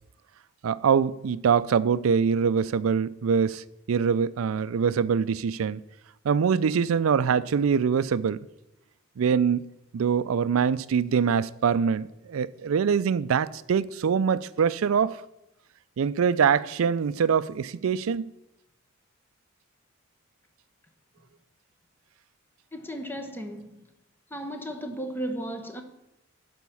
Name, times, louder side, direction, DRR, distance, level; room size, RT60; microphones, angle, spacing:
voice 1, 0.6-5.8 6.2-8.4 9.2-9.6 9.9-15.2 16.0-18.3, right 6 dB, 80° right, 0.4 m, -24 dB
voice 2, 22.7-23.8 24.3-25.8, right 1 dB, 10° left, 0.8 m, -35 dB
11.0 x 4.3 x 7.0 m
head